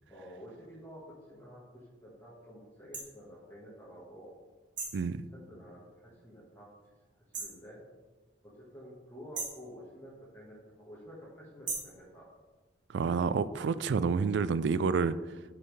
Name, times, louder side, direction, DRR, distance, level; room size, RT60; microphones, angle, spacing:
voice 1, 0.1-4.3 5.3-6.7 7.4-7.8 8.4-12.3, equal, 15° left, -7 dB, 1.5 m, -50 dB
sound 1, 2.9-3.1 4.8-5.1 7.3-7.6 9.3-9.7 11.7-12.0, right 4 dB, 45° right, 1.5 m, -37 dB
voice 2, 12.9-15.2, right 5 dB, 70° right, 15 dB, 0.3 m, -28 dB
9.7 x 5.5 x 3.3 m, 1.3 s
head